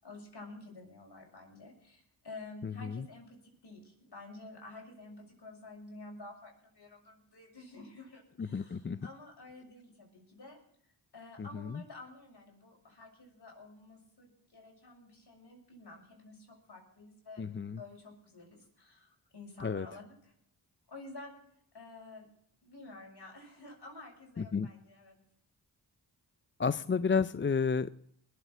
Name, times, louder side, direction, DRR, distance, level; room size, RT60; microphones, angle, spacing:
voice 1, 0.0-10.6 11.1-17.5 17.8-20.3 20.9-21.3 21.7-22.3 22.6-25.2, left 2 dB, 55° left, 0 dB, 7.0 m, -50 dB
voice 2, 2.6-3.0 8.4-9.0 11.4-11.8 17.4-17.8 19.6-19.9 24.4-24.7 26.6-27.9, left 5 dB, 25° left, 16 dB, 0.5 m, -31 dB
21.0 x 8.2 x 6.1 m, 0.68 s
cardioid pair, 40°, 47 cm